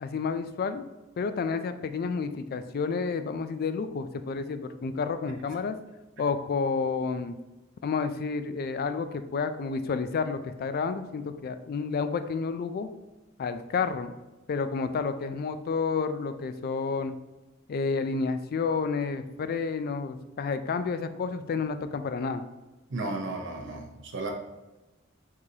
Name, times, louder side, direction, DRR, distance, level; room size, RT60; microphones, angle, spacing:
voice 1, 0.0-0.9 1.2-5.8 6.2-7.3 7.8-12.9 13.4-14.1 14.5-17.1 17.7-22.4, left 5 dB, 50° left, 10 dB, 0.3 m, -30 dB
voice 2, 22.9-24.3, right 2 dB, 65° right, 1 dB, 0.8 m, -34 dB
4.7 x 3.8 x 2.8 m, 1.1 s
head